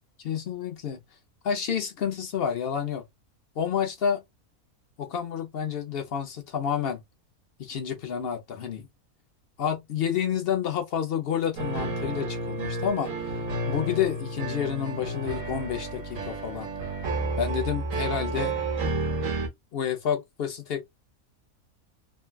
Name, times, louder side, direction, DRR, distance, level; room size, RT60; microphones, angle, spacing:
voice 1, 0.2-1.0 1.4-3.0 3.6-4.2 5.0-7.0 7.6-8.9 9.6-13.1 13.7-16.7 17.4-18.5 19.7-20.8, left 8 dB, 55° left, 0.7 m, -29 dB
sound 1, 11.6-19.5, right 2 dB, 70° right, 1.3 m, -31 dB
3.2 x 2.2 x 2.3 m
omnidirectional pair, 1.5 m